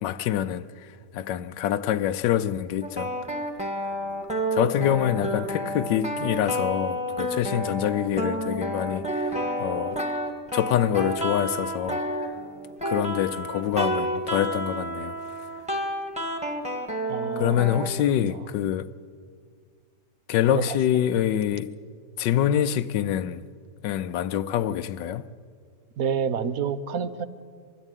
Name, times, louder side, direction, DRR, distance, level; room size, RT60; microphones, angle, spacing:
voice 1, 0.0-0.7 1.1-3.1 4.5-9.3 9.6-10.0 10.5-12.0 12.8-15.2 15.7-15.8 17.4-18.9 20.3-21.7 22.2-23.5 23.8-25.3, left 10 dB, 90° left, 1.4 m, -25 dB
sound 1, 2.8-17.9, equal, 5° right, 1.7 m, -30 dB
voice 2, 17.0-17.9 18.2-18.3 20.5-20.8 26.0-27.3, right 7 dB, 60° right, 1.2 m, -29 dB
23.0 x 13.5 x 9.1 m
omnidirectional pair, 1.9 m